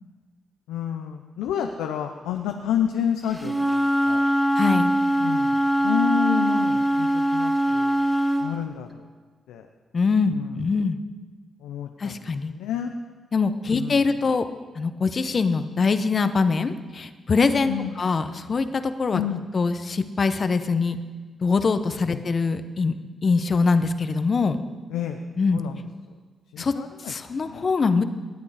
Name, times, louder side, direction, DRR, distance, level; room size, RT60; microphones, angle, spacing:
voice 1, 0.7-4.2 5.2-8.0 8.4-9.0 9.5-9.7 10.3-10.6 11.6-12.2 12.5-12.9 13.7-14.0 17.7-17.9 19.1-19.4 22.1-22.2 24.9-25.2 25.5-25.8 26.5-27.1 27.4-27.6, left 9 dB, 90° left, 5 dB, 0.6 m, -29 dB
Wind instrument woodwind instrument, 3.4-8.4, right 1 dB, 10° right, 2.1 m, -22 dB
voice 2, 4.6-4.9 9.9-11.0 12.0-12.5 13.3-14.4 14.7-19.2 19.5-21.0 21.4-22.9 23.2-24.6 25.4-25.6 26.6-26.7 27.0-28.0, left 4 dB, 50° left, 10 dB, 0.9 m, -23 dB
18.5 x 8.4 x 5.0 m, 1.4 s
supercardioid pair, 50°, 0 cm